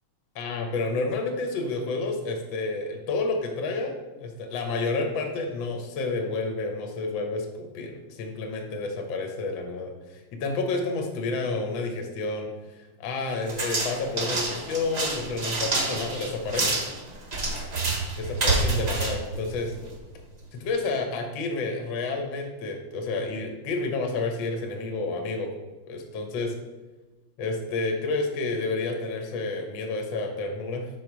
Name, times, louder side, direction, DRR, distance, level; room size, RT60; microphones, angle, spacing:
voice 1, 0.3-3.9 4.2-7.5 7.7-16.8 18.2-19.7 20.5-25.5 25.9-26.5 27.4-30.9, left 3 dB, 70° left, 3 dB, 1.5 m, -30 dB
sound 1, 13.5-20.0, right 3 dB, 85° right, 0.3 m, -28 dB
4.8 x 4.8 x 5.9 m, 1.2 s
omnidirectional pair, 2.3 m